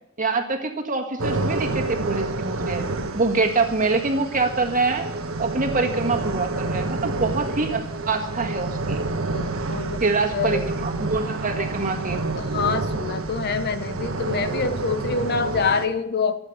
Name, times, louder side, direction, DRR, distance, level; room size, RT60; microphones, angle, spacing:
voice 1, 0.2-2.9 3.1-5.1 5.4-9.0 10.0-12.2, right 3 dB, 40° right, 3 dB, 1.8 m, -25 dB
sound 1, 1.2-15.9, right 2 dB, 90° right, 1.3 m, -28 dB
voice 2, 9.3-10.0 10.3-10.7 12.4-16.4, left 5 dB, 50° left, 10 dB, 0.9 m, -26 dB
13.5 x 8.9 x 8.7 m, 0.81 s
head